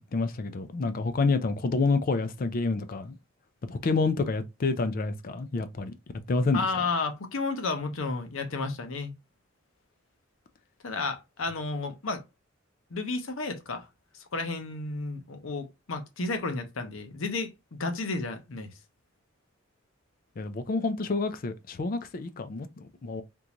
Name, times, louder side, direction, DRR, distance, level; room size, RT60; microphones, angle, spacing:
voice 1, 0.1-3.2 3.6-5.9 6.3-6.6 20.4-23.2, left 3 dB, 45° left, 0.4 m, -28 dB
voice 2, 6.5-9.1 10.8-12.2 12.9-13.9 14.2-18.7, left 3 dB, 85° left, 0.8 m, -32 dB
3.6 x 2.5 x 2.9 m
head